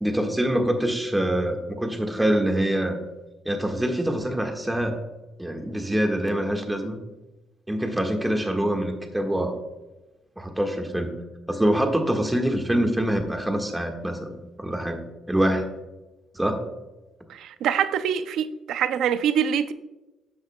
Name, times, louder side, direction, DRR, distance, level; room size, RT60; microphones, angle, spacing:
voice 1, 0.0-3.0 3.4-5.0 5.4-7.0 7.7-9.6 10.4-11.1 11.5-14.3 14.6-15.0 15.3-15.6 16.3-16.6, right 1 dB, 10° right, 4 dB, 1.5 m, -25 dB
voice 2, 17.3-19.7, right 8 dB, 80° right, 12 dB, 0.5 m, -24 dB
12.0 x 7.8 x 2.2 m, 1.0 s
cardioid pair, 90°, 0 cm